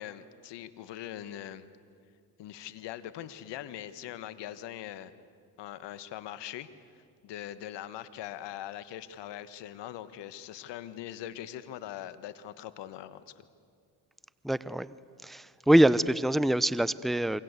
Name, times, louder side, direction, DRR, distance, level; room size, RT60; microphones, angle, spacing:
voice 1, 0.0-1.6 2.4-5.1 5.6-6.7 7.2-13.3, left 12 dB, 70° left, 13 dB, 1.5 m, -41 dB
voice 2, 14.4-15.0 15.2-17.4, right 1 dB, ahead, 17 dB, 0.7 m, -24 dB
28.0 x 24.0 x 8.2 m, 2.3 s
supercardioid pair, 65°, 43 cm